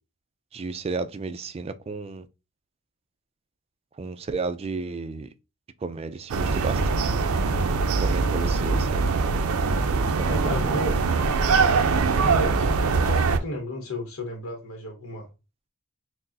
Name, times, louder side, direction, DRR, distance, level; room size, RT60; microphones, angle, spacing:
voice 1, 0.5-2.3 4.0-5.3 5.8-7.0 8.0-9.0 10.2-10.8, right 4 dB, 30° right, 0.3 m, -32 dB
sound 1, 6.3-13.4, right 4 dB, 85° right, 0.5 m, -23 dB
sound 2, 7.4-7.5 8.1-8.3 9.1-9.2 9.8-10.2 11.1-12.4, left 1 dB, 15° left, 0.6 m, -42 dB
voice 2, 8.2-8.8 10.2-11.0 11.9-15.3, equal, 70° left, 1.0 m, -33 dB
5.9 x 2.0 x 2.6 m
head